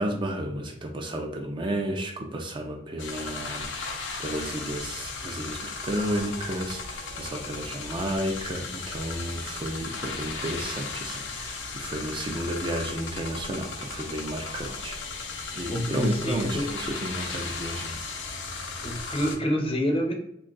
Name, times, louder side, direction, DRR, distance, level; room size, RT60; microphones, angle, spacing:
voice 1, 0.0-15.0 15.5-18.0, right 1 dB, 25° right, 2 dB, 0.4 m, -32 dB
sound 1, 3.0-19.4, left 4 dB, 80° left, 0.5 m, -36 dB
voice 2, 15.7-16.7 18.8-20.1, equal, 30° left, 2 dB, 0.5 m, -27 dB
2.6 x 2.3 x 3.9 m, 0.77 s
head